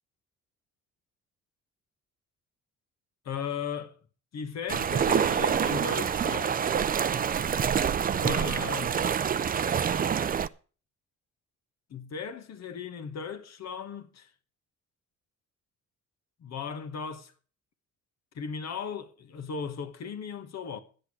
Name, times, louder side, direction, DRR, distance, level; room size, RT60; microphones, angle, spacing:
voice 1, 3.2-4.0 4.3-6.8 8.2-9.0 11.9-14.3 16.4-17.3 18.3-20.8, left 6 dB, 60° left, 1.4 m, -37 dB
sound 1, 4.7-10.5, right 7 dB, 30° right, 0.4 m, -26 dB
10.0 x 8.1 x 6.2 m
cardioid pair, 90°, 30 cm